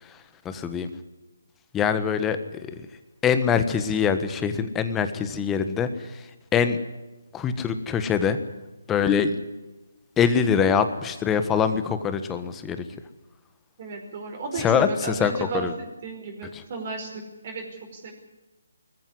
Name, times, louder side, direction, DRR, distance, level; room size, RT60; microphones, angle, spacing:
voice 1, 0.0-0.9 1.7-2.8 3.2-6.8 7.3-8.4 8.9-9.4 10.2-12.8 14.6-15.7, left 7 dB, 10° left, 10 dB, 1.4 m, -24 dB
voice 2, 13.8-17.1 17.4-18.1, right 4 dB, 40° right, 2 dB, 5.1 m, -33 dB
20.5 x 14.5 x 9.8 m, 1.1 s
figure-of-eight pair, 150°, 0 cm